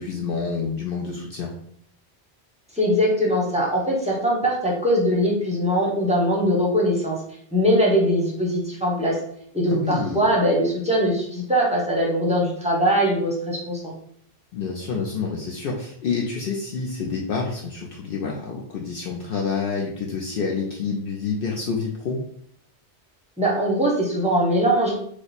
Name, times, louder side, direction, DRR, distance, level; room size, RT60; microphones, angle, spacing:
voice 1, 0.0-1.5 9.7-10.2 14.5-22.2, left 5 dB, 65° left, -2 dB, 0.7 m, -28 dB
voice 2, 2.7-7.2 7.5-9.2 9.5-13.9 23.4-24.9, equal, 10° right, -4 dB, 0.6 m, -21 dB
3.1 x 2.0 x 4.0 m, 0.65 s
omnidirectional pair, 1.1 m